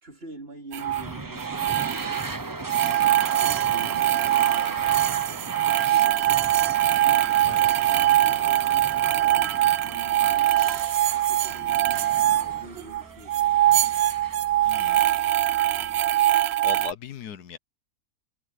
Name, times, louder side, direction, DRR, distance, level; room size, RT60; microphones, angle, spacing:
voice 1, 0.0-1.9 2.9-6.3 7.0-10.7 11.1-13.6, right 3 dB, 35° right, 3.7 m, -46 dB
sound 1, 0.7-1.0 1.4-2.3 2.7-13.0 13.3-16.9, right 13 dB, 75° right, 0.6 m, -22 dB
sound 2, 0.8-15.7, right 2 dB, 20° right, 0.7 m, -38 dB
voice 2, 2.9-3.2 7.4-7.6 14.6-15.0 16.6-17.6, left 9 dB, 80° left, 1.5 m, -38 dB
sound 3, 6.2-16.0, equal, 10° left, 3.6 m, -53 dB
omnidirectional pair, 1.7 m